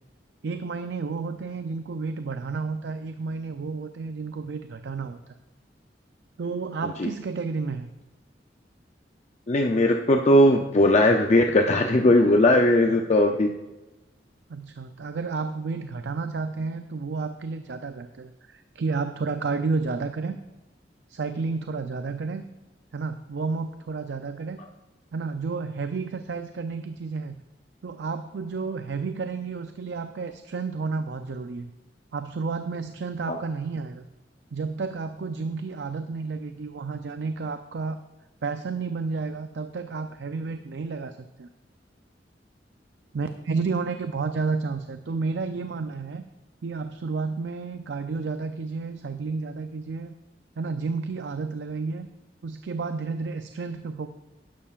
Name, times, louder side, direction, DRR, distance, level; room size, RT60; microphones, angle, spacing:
voice 1, 0.4-5.2 6.4-7.9 14.5-20.4 21.1-22.4 22.9-24.6 25.1-27.4 27.8-31.7 32.1-34.1 34.5-38.0 38.4-41.5 43.1-46.2 46.6-50.1 50.6-52.1 52.4-54.1, right 4 dB, 80° right, 9 dB, 0.5 m, -31 dB
voice 2, 9.5-13.5 33.3-33.4, left 1 dB, 40° left, 3 dB, 0.6 m, -19 dB
11.5 x 11.0 x 2.5 m, 1.1 s
head